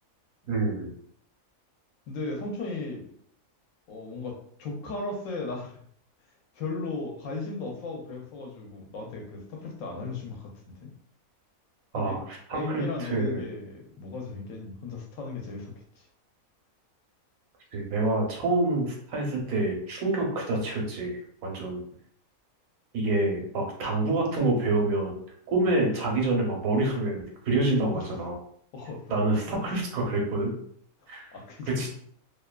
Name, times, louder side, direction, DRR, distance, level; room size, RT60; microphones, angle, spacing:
voice 1, 0.4-0.9 11.9-13.4 17.7-21.8 22.9-25.1 25.5-28.3 29.1-30.5 31.1-31.3 31.7-31.9, right 2 dB, 80° right, 0 dB, 1.1 m, -27 dB
voice 2, 2.1-3.1 3.9-5.8 6.5-10.9 11.9-12.2 12.5-16.1 25.6-25.7 27.9-28.1 28.7-29.6 31.0-31.9, left 3 dB, 75° left, 1 dB, 1.0 m, -36 dB
2.7 x 2.2 x 2.2 m, 0.63 s
omnidirectional pair, 1.4 m